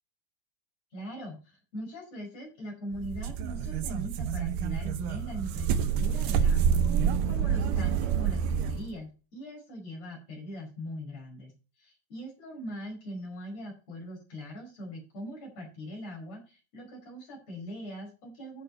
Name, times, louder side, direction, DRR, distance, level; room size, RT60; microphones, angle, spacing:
voice 1, 0.9-11.5 11.8-18.6, equal, 50° left, -1 dB, 6.1 m, -41 dB
sound 1, 2.9-8.9, right 7 dB, 75° right, 2.3 m, -28 dB
11.0 x 6.5 x 4.4 m, 0.33 s
omnidirectional pair, 4.1 m